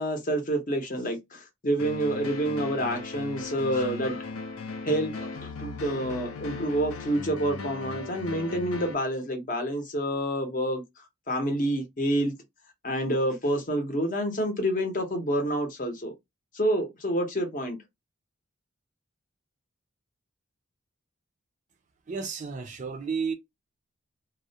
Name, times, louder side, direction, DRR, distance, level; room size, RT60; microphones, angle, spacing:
voice 1, 0.0-4.2 4.8-10.8 11.3-12.3 12.8-16.1 16.5-17.8, right 1 dB, 40° left, 0.7 m, -28 dB
sound 1, 1.8-8.9, left 4 dB, 90° left, 0.4 m, -37 dB
voice 2, 22.1-23.3, right 5 dB, 35° right, 0.4 m, -32 dB
2.3 x 2.1 x 2.6 m
head